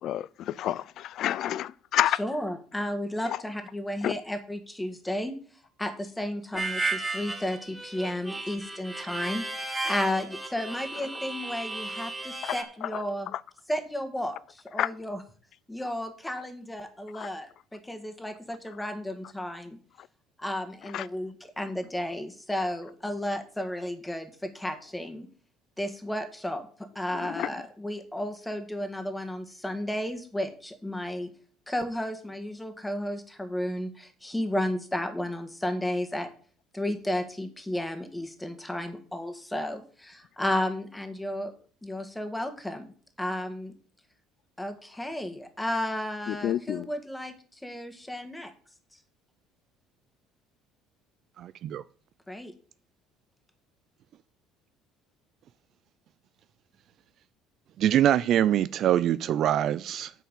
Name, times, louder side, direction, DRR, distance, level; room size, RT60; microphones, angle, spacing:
voice 1, 0.0-2.2 3.2-3.4 4.0-4.1 12.4-13.0 13.3-13.4 14.8-14.9 17.1-17.3 20.9-21.1 27.1-27.5 46.3-46.9, left 12 dB, 60° left, 0.4 m, -29 dB
voice 2, 2.2-5.3 5.8-13.3 13.7-15.2 15.7-19.8 20.4-25.3 25.8-26.7 26.9-31.3 31.7-36.3 36.7-41.5 41.8-43.7 44.6-48.5 52.3-52.5, left 1 dB, 5° left, 1.7 m, -33 dB
Harmonica, 6.6-12.6, right 3 dB, 10° right, 1.5 m, -34 dB
voice 3, 51.4-51.8 57.8-60.1, right 11 dB, 55° right, 0.3 m, -24 dB
8.9 x 4.6 x 7.5 m
supercardioid pair, 105°, 0 cm